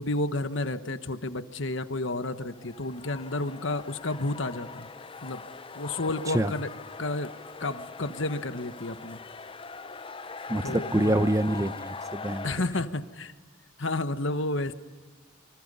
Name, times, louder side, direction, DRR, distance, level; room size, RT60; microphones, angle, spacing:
voice 1, 0.0-4.9 5.2-5.4 5.7-6.7 7.0-7.3 7.6-9.2 10.6-11.1 12.4-13.3 13.8-14.7, left 2 dB, 60° left, 10 dB, 1.3 m, -31 dB
sound 1, 2.2-12.6, left 4 dB, 25° left, 0.7 m, -41 dB
voice 2, 10.5-12.5, right 1 dB, 15° right, 12 dB, 0.7 m, -26 dB
28.0 x 25.5 x 5.6 m, 1.3 s
head